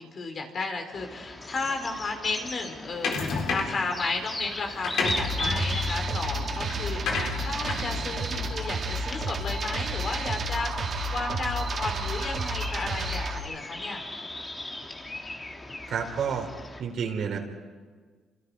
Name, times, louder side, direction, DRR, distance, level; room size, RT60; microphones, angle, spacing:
voice 1, 0.0-10.7 11.1-14.0, left 3 dB, 45° left, 4 dB, 4.1 m, -33 dB
sound 1, 0.9-16.8, left 2 dB, 20° left, 2.3 m, -39 dB
sound 2, 3.0-3.9 4.6-9.3, left 4 dB, 70° left, 3.9 m, -32 dB
sound 3, 5.0-13.4, right 2 dB, 45° right, 3.4 m, -31 dB
voice 2, 15.9-16.5 16.8-17.4, right 7 dB, 65° right, 3 dB, 3.9 m, -29 dB
29.0 x 26.0 x 4.9 m, 1.5 s
cardioid pair, 105°, 0 cm